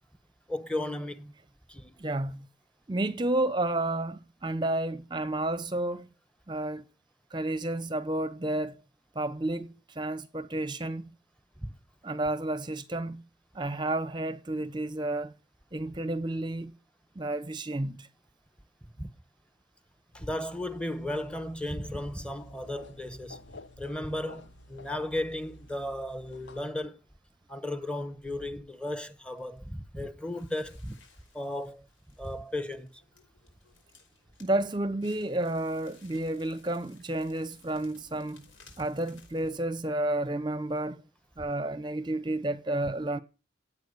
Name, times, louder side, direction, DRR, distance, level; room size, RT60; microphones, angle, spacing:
voice 1, 0.5-1.3 1.7-2.0 11.6-11.7 18.8-19.1 20.1-23.4 23.8-27.0 27.5-31.0 31.3-31.9 32.2-33.0, left 1 dB, 5° left, 1.0 m, -35 dB
voice 2, 2.0-2.4 2.9-6.1 6.5-6.8 7.3-8.8 9.2-11.1 12.0-13.2 13.5-15.3 15.7-16.7 17.2-18.1 34.4-38.4 38.8-41.0 41.4-43.2, right 1 dB, 25° right, 0.7 m, -31 dB
sound 1, 20.1-26.6, left 2 dB, 70° left, 1.1 m, -52 dB
Crackle, 29.3-39.5, left 4 dB, 90° left, 5.1 m, -60 dB
16.5 x 8.7 x 6.7 m
head